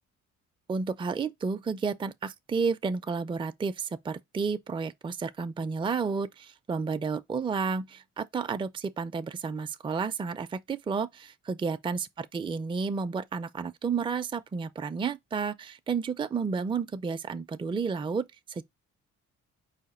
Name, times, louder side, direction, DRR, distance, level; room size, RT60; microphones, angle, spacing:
voice 1, 0.7-18.6, right 5 dB, 15° right, 0.4 m, -31 dB
4.9 x 2.2 x 4.3 m
cardioid pair, 90°, 30 cm